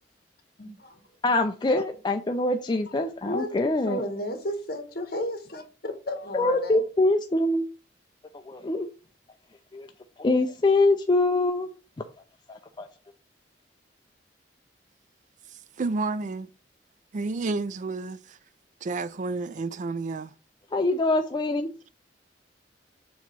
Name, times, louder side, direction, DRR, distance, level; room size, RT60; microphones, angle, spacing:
voice 1, 0.6-1.0 1.3-1.4 3.2-6.8, left 1 dB, 60° left, 1.5 m, -33 dB
voice 2, 1.2-4.0 6.3-7.7 8.5-8.9 9.7-9.9 10.2-11.7 12.5-12.9 20.7-21.9, left 2 dB, 25° left, 0.4 m, -24 dB
voice 3, 15.8-16.5 17.1-18.4 18.8-20.3, right 3 dB, 45° right, 0.4 m, -30 dB
7.0 x 3.0 x 6.0 m
head